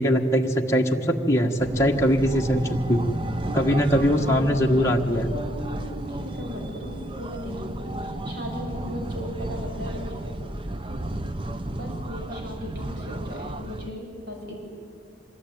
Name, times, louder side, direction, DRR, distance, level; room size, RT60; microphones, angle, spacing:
voice 1, 0.0-3.0 3.5-5.3, equal, 15° left, -1 dB, 1.4 m, -21 dB
sound 1, 1.6-13.9, right 1 dB, 25° right, 0.7 m, -33 dB
voice 2, 4.1-5.0 5.3-10.3 11.8-14.5, equal, 55° right, 0 dB, 6.8 m, -37 dB
25.5 x 21.5 x 9.4 m, 2.5 s
head